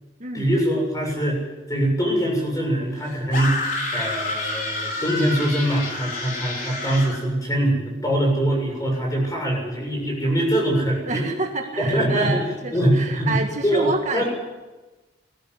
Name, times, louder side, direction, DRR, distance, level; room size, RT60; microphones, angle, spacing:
voice 1, 0.3-1.4 1.7-3.6 3.9-11.3 11.8-12.4 12.7-14.3, right 1 dB, 20° left, 0 dB, 7.2 m, -23 dB
sound 1, 3.3-7.2, left 2 dB, 50° left, 4.6 m, -29 dB
voice 2, 11.1-14.2, right 3 dB, 40° right, 3 dB, 1.8 m, -28 dB
20.5 x 14.0 x 9.7 m, 1.2 s
head